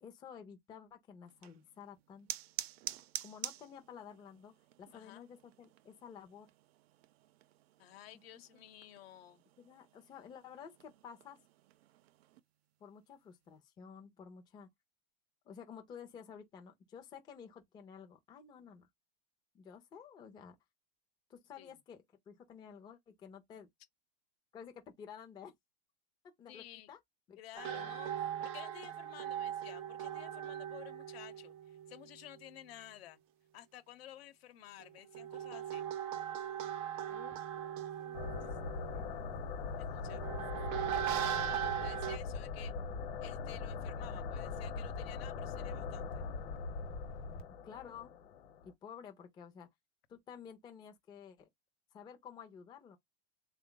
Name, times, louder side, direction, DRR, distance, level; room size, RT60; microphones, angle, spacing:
voice 1, 0.0-2.3 3.2-6.5 8.3-8.4 9.6-11.4 12.8-14.7 15.4-18.9 19.5-20.6 21.3-23.7 24.5-25.5 26.4-27.0 27.3-27.4 27.7-28.0 37.1-38.5 38.9-39.2 40.3-41.0 47.3-48.1 48.6-49.7 50.1-51.5 51.9-53.0, left 7 dB, 15° left, 0.5 m, -52 dB
sound 1, 1.2-12.4, right 13 dB, 85° right, 0.6 m, -49 dB
voice 2, 4.9-5.3 7.8-9.4 21.6-21.8 26.5-26.9 27.4-33.2 33.5-35.9 39.8-40.2 41.8-42.8 43.2-46.2, left 13 dB, 80° left, 1.0 m, -53 dB
sound 2, 27.6-32.6 34.8-42.2, right 10 dB, 40° right, 0.6 m, -40 dB
sound 3, 38.1-48.7, left 4 dB, 55° left, 1.1 m, -41 dB
3.7 x 2.3 x 3.8 m
supercardioid pair, 170°, 30 cm